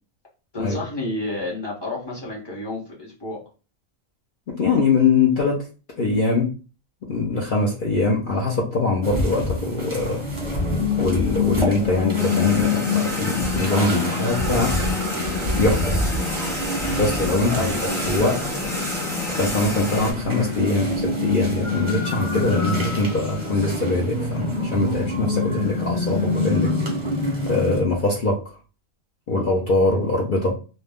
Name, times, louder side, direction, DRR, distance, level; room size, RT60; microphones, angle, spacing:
voice 1, 0.5-3.4 17.5-17.8, left 2 dB, 20° left, -5 dB, 1.1 m, -30 dB
voice 2, 4.5-5.6 6.0-6.5 7.1-10.2 11.0-14.7 15.5-15.9 17.0-17.7 18.1-18.4 19.4-26.7 27.4-28.4 29.3-30.5, left 3 dB, 50° left, -3 dB, 0.7 m, -22 dB
sound 1, 9.0-27.8, left 3 dB, 25° right, 0.8 m, -26 dB
sound 2, 12.2-20.1, left 2 dB, 5° left, 0.7 m, -28 dB
2.5 x 2.2 x 3.4 m, 0.34 s
omnidirectional pair, 1.4 m